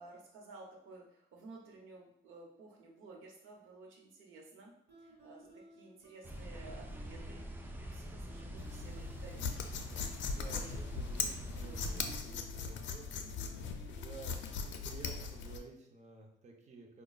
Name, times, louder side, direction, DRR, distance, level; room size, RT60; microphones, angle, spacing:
voice 1, 0.0-4.7 5.0-7.4 7.9-9.4, right 3 dB, 90° right, -1 dB, 0.9 m, -54 dB
sound 1, 4.9-15.0, right 1 dB, 65° right, 1.0 m, -59 dB
sound 2, 6.2-12.2, equal, 10° right, 0.4 m, -45 dB
sound 3, 8.6-15.6, left 5 dB, 70° left, 0.4 m, -40 dB
voice 2, 10.2-17.0, right 4 dB, 35° right, 1 dB, 0.8 m, -53 dB
4.9 x 2.2 x 2.3 m, 0.74 s
cardioid pair, 90°, 20 cm